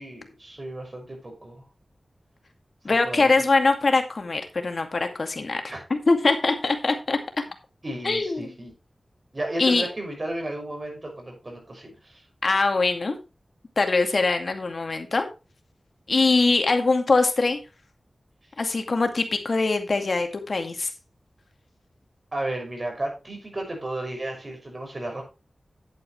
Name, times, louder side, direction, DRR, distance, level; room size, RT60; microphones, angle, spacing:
voice 1, 0.0-1.6 2.9-3.3 5.7-5.8 7.8-8.7 9.3-12.2 22.3-25.2, right 1 dB, 40° right, 2 dB, 6.2 m, -33 dB
voice 2, 2.8-5.6 5.9-7.4 8.0-8.5 9.6-9.9 12.4-13.2 13.8-15.3 16.1-17.6 18.6-20.9, left 3 dB, 65° left, 5 dB, 2.2 m, -22 dB
10.5 x 8.9 x 3.2 m, 0.29 s
wide cardioid pair, 60°, 0 cm